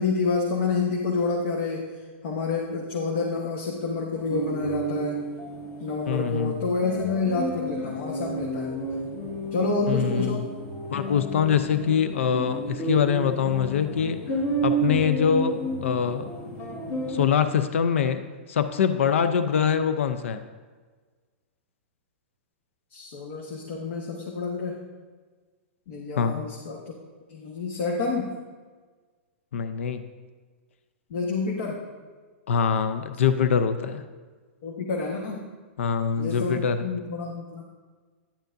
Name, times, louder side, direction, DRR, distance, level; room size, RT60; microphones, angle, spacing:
voice 1, 0.0-1.9 2.2-5.2 5.8-8.8 9.5-10.5 22.9-24.8 25.9-26.8 27.3-28.3 31.1-31.8 34.6-35.4 36.2-37.6, left 4 dB, 65° left, -1 dB, 1.3 m, -28 dB
sound 1, 4.1-17.3, right 1 dB, 35° left, 1.6 m, -32 dB
voice 2, 6.1-6.6 9.9-10.4 10.9-14.2 14.6-16.3 17.1-18.2 18.5-20.4 26.2-26.4 29.5-30.1 32.5-34.0 35.8-36.9, left 7 dB, 80° left, 10 dB, 0.5 m, -24 dB
10.0 x 9.1 x 2.6 m, 1.4 s
hypercardioid pair, 130°, 7 cm